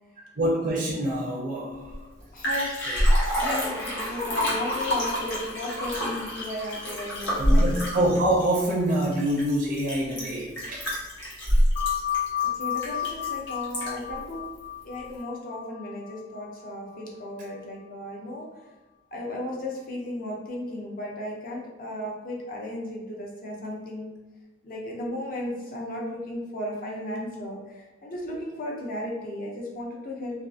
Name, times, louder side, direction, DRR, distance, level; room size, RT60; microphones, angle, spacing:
voice 1, 0.2-2.1 2.9-3.0 3.3-3.8 7.4-10.9 14.1-14.2, right 1 dB, 45° right, -3 dB, 0.4 m, -26 dB
Liquid, 1.9-2.0 2.2-14.1 14.6-14.7, equal, 75° left, 1.0 m, -26 dB
voice 2, 2.3-2.7 3.4-7.7 12.4-14.4 14.8-18.5 19.1-24.1 24.6-30.5, left 1 dB, 50° left, -2 dB, 0.6 m, -35 dB
sound 1, 11.8-16.9, left 10 dB, 20° left, 0.8 m, -32 dB
2.6 x 2.4 x 2.4 m, 1.1 s
head